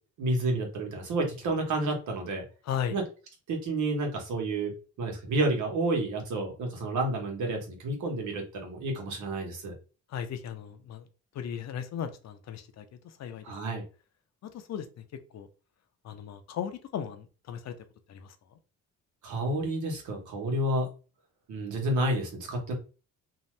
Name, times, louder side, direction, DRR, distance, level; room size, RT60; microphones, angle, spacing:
voice 1, 0.2-2.4 2.9-3.0 3.5-4.7 5.0-9.7 13.4-13.8 19.2-20.9 21.5-22.8, right 2 dB, 75° right, 2 dB, 1.1 m, -30 dB
voice 2, 2.6-3.0 10.1-11.1 11.3-13.4 14.4-15.0 15.3-15.5 16.0-17.7 18.1-18.3, left 8 dB, 60° left, 8 dB, 0.6 m, -36 dB
2.7 x 2.3 x 3.1 m, 0.34 s
cardioid pair, 90°, 30 cm